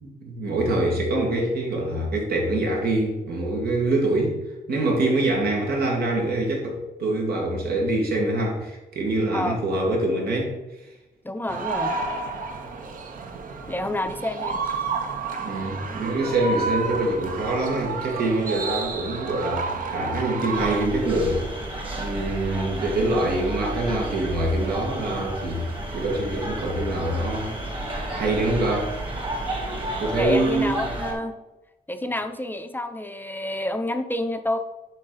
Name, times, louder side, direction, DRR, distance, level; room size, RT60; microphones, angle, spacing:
voice 1, 0.0-4.4 4.7-10.5 15.4-21.4 22.0-25.6 25.9-27.5 28.1-28.9 30.0-30.8, right 2 dB, 80° right, -1 dB, 2.0 m, -25 dB
voice 2, 11.2-12.0 13.7-14.6 29.7-31.3 31.9-34.6, left 1 dB, 15° left, 8 dB, 0.5 m, -29 dB
sound 1, 11.5-20.9, right 4 dB, 60° right, 0.9 m, -30 dB
sound 2, 20.5-31.1, right 1 dB, 35° right, 1.7 m, -32 dB
7.5 x 5.2 x 4.0 m, 1.0 s
wide cardioid pair, 125°, 16 cm